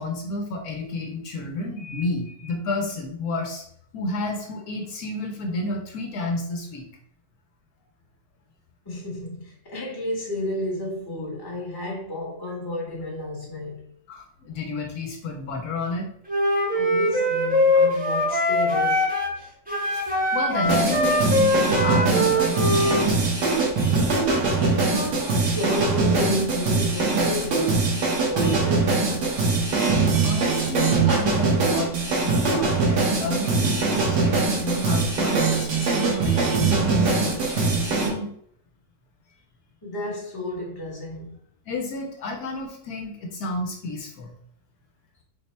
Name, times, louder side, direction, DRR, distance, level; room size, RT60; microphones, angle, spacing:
voice 1, 0.0-3.6 3.9-6.9 14.1-16.1 19.9-23.2 30.2-31.9 32.2-38.3 41.7-44.3, left 2 dB, 70° left, 1.2 m, -31 dB
voice 2, 8.8-13.9 16.7-19.1 24.2-29.5 39.8-41.4, left 1 dB, 15° left, 1.0 m, -32 dB
Wind instrument woodwind instrument, 16.3-19.4 19.7-23.1, left 1 dB, 5° right, 0.9 m, -22 dB
sound 1, 20.6-38.1, right 3 dB, 85° right, 1.5 m, -22 dB
4.0 x 2.2 x 4.1 m
omnidirectional pair, 1.7 m